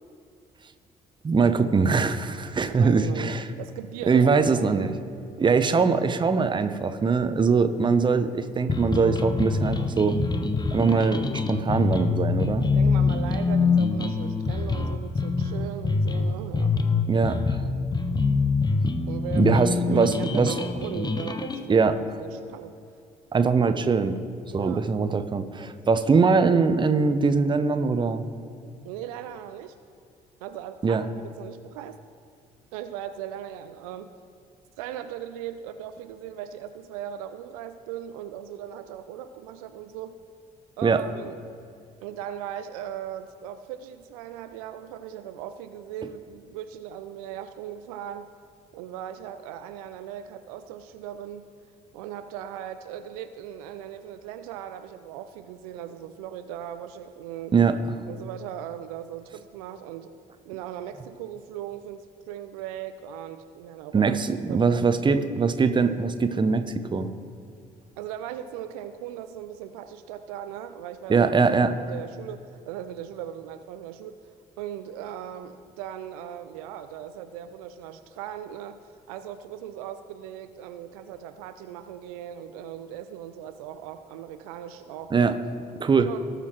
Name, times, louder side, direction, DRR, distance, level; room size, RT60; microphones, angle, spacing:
voice 1, 1.2-3.5 4.1-4.9 5.4-10.2 10.7-12.7 17.1-17.6 19.3-20.5 21.7-21.9 23.3-24.2 24.5-28.2 30.8-31.0 40.8-41.0 57.5-57.7 63.9-66.7 66.9-67.1 71.1-71.8 85.1-85.4 85.8-86.1, right 5 dB, 25° right, 10 dB, 0.7 m, -22 dB
voice 2, 2.7-4.7 12.6-16.9 19.1-19.6 19.9-21.9 22.2-22.7 24.5-24.8 28.8-29.8 30.4-32.0 32.7-34.1 34.8-40.2 40.8-41.4 42.0-48.3 48.7-51.5 51.9-57.5 58.1-60.1 60.5-65.3 68.0-71.4 71.9-74.2 74.6-78.8 79.1-85.3 86.1-86.3, right 10 dB, 65° right, 10 dB, 0.5 m, -38 dB
sound 1, 8.7-21.6, left 4 dB, 20° left, 0.8 m, -25 dB
18.5 x 6.7 x 3.1 m, 2.4 s
figure-of-eight pair, 45°, 20 cm